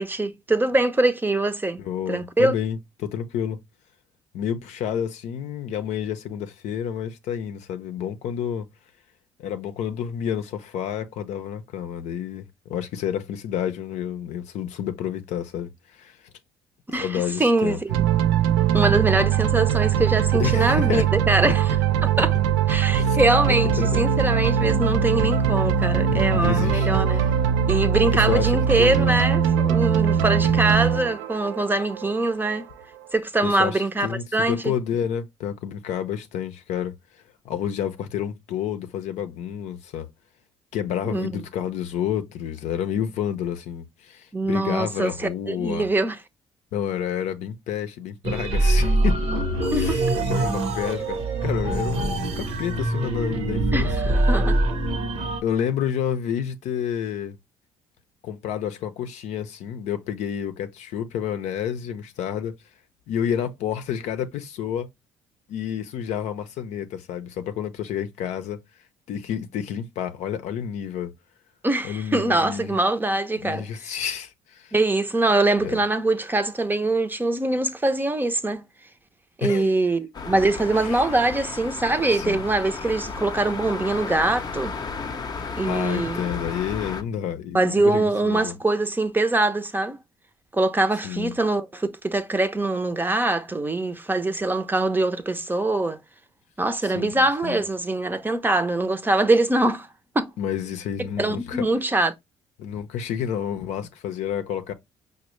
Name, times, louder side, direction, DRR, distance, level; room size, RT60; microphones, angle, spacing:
voice 1, 0.0-1.8 2.1-2.5 16.9-17.9 18.7-21.8 22.0-22.4 22.7-27.2 27.7-32.7 33.1-34.7 41.0-41.3 44.3-46.2 49.7-50.0 53.7-54.6 71.6-74.0 74.7-78.6 79.4-84.7 85.6-86.2 87.5-90.0 90.5-96.0 96.6-99.9 100.1-100.3 101.2-102.1, right 2 dB, 15° right, 0.6 m, -23 dB
voice 2, 1.8-3.6 4.3-8.7 9.4-12.4 12.7-16.2 16.9-17.8 20.4-21.1 21.5-21.6 23.0-23.2 23.5-24.0 25.2-25.3 26.1-26.9 28.1-29.2 30.3-30.6 33.4-36.9 37.4-40.1 40.7-45.9 46.7-49.2 49.7-53.9 55.4-57.4 58.2-62.5 63.1-64.9 65.5-68.6 69.1-71.1 71.8-72.8 73.4-74.7 75.6-75.8 79.4-79.7 80.8-81.1 82.1-82.4 85.6-88.5 91.0-91.3 96.8-97.6 100.4-101.6 102.6-104.7, left 9 dB, 70° left, 0.6 m, -29 dB
sound 1, 17.9-32.6, right 8 dB, 85° right, 0.4 m, -21 dB
sound 2, 48.2-55.4, right 1 dB, 65° right, 0.8 m, -23 dB
sound 3, 80.1-87.0, left 4 dB, 35° left, 0.6 m, -33 dB
5.1 x 2.1 x 3.0 m
supercardioid pair, 65°, 12 cm